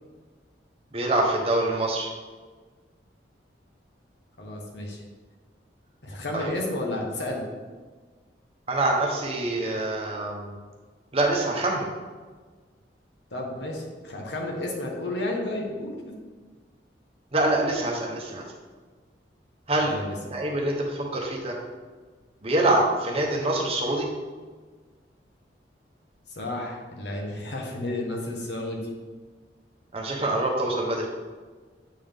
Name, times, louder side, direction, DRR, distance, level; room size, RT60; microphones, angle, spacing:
voice 1, 0.9-2.1 6.3-6.5 8.7-10.5 11.1-11.9 17.3-18.4 19.7-21.6 22.4-24.1 29.9-31.1, right 2 dB, 35° right, -1 dB, 0.9 m, -25 dB
voice 2, 4.4-5.0 6.0-7.4 13.3-16.2 19.8-20.1 26.3-28.9, left 1 dB, 70° left, 0 dB, 1.1 m, -32 dB
7.7 x 3.6 x 3.5 m, 1.4 s
head